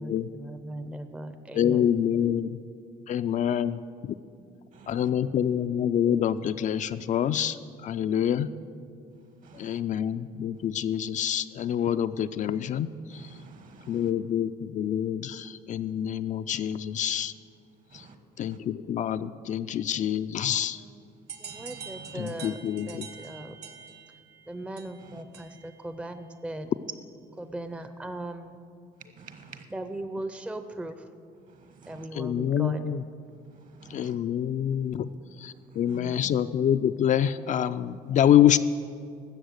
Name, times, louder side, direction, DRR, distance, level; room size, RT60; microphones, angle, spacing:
voice 1, 0.0-1.9 20.7-21.0 21.4-22.6 22.8-23.6 24.5-26.7 27.4-28.6 29.7-31.1 31.9-32.8 35.9-36.4, right 1 dB, 5° right, 9 dB, 0.6 m, -38 dB
voice 2, 1.5-2.6 3.1-4.1 4.9-7.6 7.8-8.5 9.6-12.9 13.9-17.3 18.4-20.8 22.1-23.1 32.2-33.0 33.9-35.1 35.4-38.6, left 10 dB, 50° left, 11 dB, 0.4 m, -26 dB
voice 3, 4.7-5.1 9.4-9.8 13.1-14.1 17.9-18.1 18.5-18.6 21.5-22.4 25.0-25.2 29.2-29.6 31.5-32.1 33.6-34.2 35.9-36.0, right 5 dB, 50° right, 8 dB, 1.3 m, -50 dB
sound 1, 21.3-25.8, right 7 dB, 75° right, 1.2 m, -45 dB
13.0 x 7.6 x 8.1 m, 2.4 s
cardioid pair, 110°, 17 cm